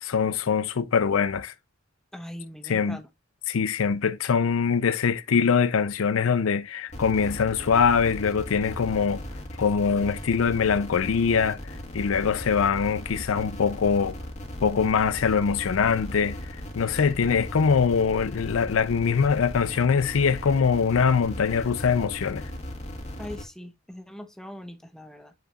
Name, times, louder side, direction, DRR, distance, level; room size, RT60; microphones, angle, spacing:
voice 1, 0.0-1.5 2.6-3.0 3.5-9.2 9.6-14.2 14.6-16.4 16.8-22.5, left 6 dB, 90° left, 0.5 m, -23 dB
voice 2, 2.1-3.1 23.2-25.3, left 1 dB, 5° left, 0.9 m, -41 dB
sound 1, 6.9-23.4, equal, 35° left, 1.5 m, -37 dB
7.9 x 4.9 x 2.4 m
head